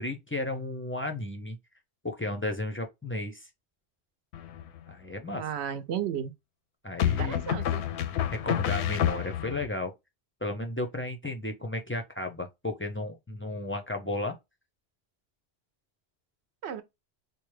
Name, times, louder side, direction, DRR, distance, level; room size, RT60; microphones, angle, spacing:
voice 1, 0.0-1.6 2.0-3.5 4.9-5.4 6.8-7.4 8.3-9.9 10.4-14.4, left 2 dB, 15° left, 0.4 m, -33 dB
sound 1, 4.3-4.9 7.0-9.7, left 10 dB, 85° left, 0.9 m, -29 dB
voice 2, 5.4-6.3 7.2-7.8 16.6-16.8, right 9 dB, 75° right, 0.9 m, -33 dB
4.4 x 2.2 x 3.1 m
omnidirectional pair, 1.1 m